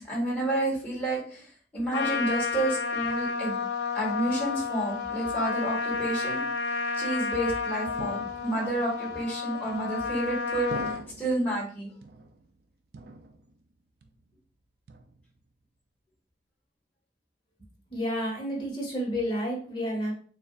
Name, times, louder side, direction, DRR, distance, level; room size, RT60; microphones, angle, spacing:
voice 1, 0.0-1.5 1.7-3.5 3.9-6.4 6.9-11.9, right 1 dB, 10° left, -6 dB, 1.9 m, -30 dB
Trumpet, 1.9-11.0, left 5 dB, 85° left, 0.7 m, -31 dB
sound 1, 8.0-8.8 9.7-10.2 10.7-11.5 12.0-12.6 12.9-13.7 14.0-14.4 14.9-15.5, right 3 dB, 60° right, 0.4 m, -43 dB
voice 2, 17.9-20.1, equal, 30° left, -3 dB, 1.6 m, -30 dB
6.6 x 2.3 x 2.4 m, 0.43 s
head